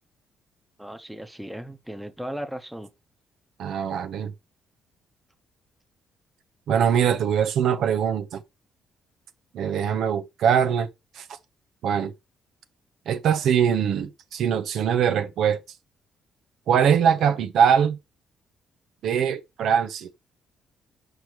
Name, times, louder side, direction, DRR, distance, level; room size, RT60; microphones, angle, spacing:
voice 1, 0.8-2.9 17.2-17.4, equal, 5° right, 1.0 m, -36 dB
voice 2, 3.6-4.3 6.7-8.4 9.5-10.9 11.1-11.3 11.8-12.1 13.1-15.6 16.7-18.0 19.0-20.1, right 8 dB, 75° right, 0.8 m, -22 dB
7.7 x 4.9 x 3.2 m
cardioid pair, 90°, 0 cm